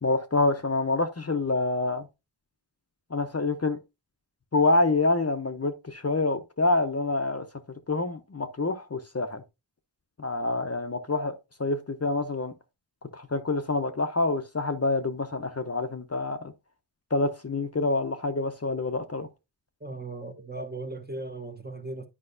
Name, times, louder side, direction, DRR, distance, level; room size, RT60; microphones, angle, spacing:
voice 1, 0.0-2.1 3.1-3.8 4.5-7.4 7.9-9.4 10.2-11.3 11.6-12.5 13.1-16.5 17.1-19.3, left 2 dB, 35° left, 0.7 m, -27 dB
voice 2, 19.8-22.1, right 2 dB, 20° right, 1.0 m, -37 dB
9.8 x 5.2 x 2.6 m
wide cardioid pair, 70°, 45 cm